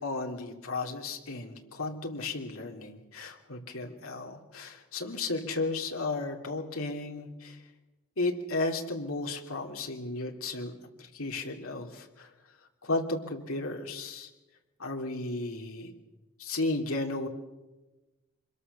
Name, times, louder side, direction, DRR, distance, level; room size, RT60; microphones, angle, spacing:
voice 1, 0.0-7.6 8.2-10.7 11.0-12.3 12.8-14.3 14.8-15.9 16.4-17.3, left 2 dB, 70° left, 2 dB, 3.2 m, -34 dB
25.5 x 21.5 x 6.9 m, 1.1 s
head